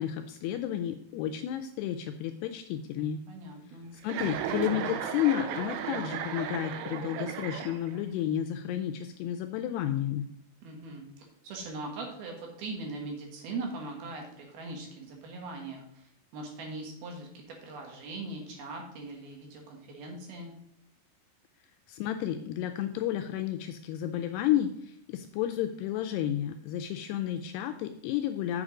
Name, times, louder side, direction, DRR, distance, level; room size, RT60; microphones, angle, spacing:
voice 1, 0.0-3.2 3.9-10.3 21.9-28.6, left 11 dB, 85° left, 6 dB, 2.4 m, -31 dB
voice 2, 3.3-3.9 10.6-20.5, right 3 dB, 65° right, 1 dB, 3.1 m, -40 dB
Chuckle chortle, 4.0-8.1, right 8 dB, 85° right, 2.8 m, -35 dB
8.0 x 6.4 x 4.9 m, 0.69 s
omnidirectional pair, 5.1 m